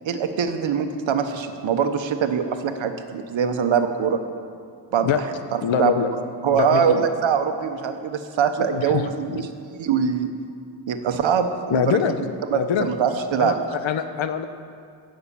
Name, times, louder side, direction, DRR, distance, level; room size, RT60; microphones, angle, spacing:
voice 1, 0.0-4.2 4.9-6.1 6.4-9.5 9.8-10.3 10.9-12.0 12.5-13.5, right 7 dB, 80° right, 7 dB, 1.2 m, -23 dB
voice 2, 5.6-6.1 6.5-7.0 8.6-9.0 9.3-9.4 11.7-14.4, left 8 dB, 85° left, 9 dB, 1.0 m, -25 dB
16.0 x 6.7 x 8.5 m, 2.3 s
wide cardioid pair, 160°, 45 cm